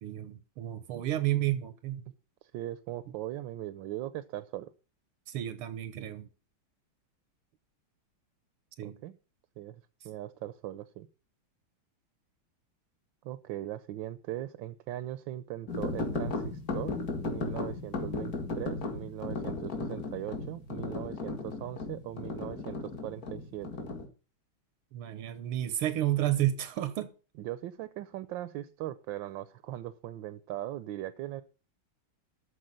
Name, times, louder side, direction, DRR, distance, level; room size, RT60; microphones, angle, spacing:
voice 1, 0.0-2.0 5.3-6.3 8.8-9.0 24.9-27.1, right 13 dB, 85° right, 1.8 m, -31 dB
voice 2, 2.4-4.7 8.8-9.2 9.6-11.1 13.2-23.9 27.4-31.4, right 14 dB, 70° right, 1.3 m, -40 dB
sound 1, 15.7-24.1, left 3 dB, 45° left, 2.2 m, -36 dB
13.0 x 5.0 x 7.5 m
omnidirectional pair, 2.3 m